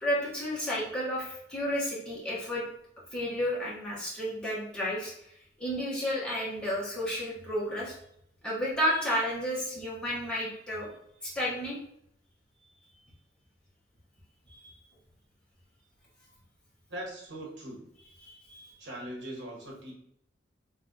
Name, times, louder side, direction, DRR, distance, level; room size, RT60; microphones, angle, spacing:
voice 1, 0.0-2.6 3.1-5.3 5.6-7.9 8.4-10.9 11.2-11.8 14.5-14.8 18.2-18.7, equal, 5° left, -7 dB, 1.2 m, -32 dB
voice 2, 16.9-17.9 18.8-19.9, right 1 dB, 65° right, -2 dB, 1.3 m, -40 dB
3.4 x 3.0 x 3.9 m, 0.74 s
head